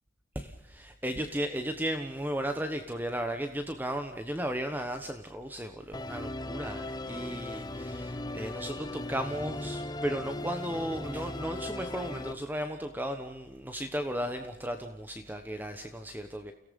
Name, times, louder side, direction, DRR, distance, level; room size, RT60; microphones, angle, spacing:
voice 1, 0.3-16.5, equal, 10° right, 6 dB, 1.1 m, -35 dB
Musical instrument, 5.9-12.3, left 1 dB, 20° left, 0.9 m, -38 dB
30.0 x 17.5 x 5.4 m, 0.91 s
head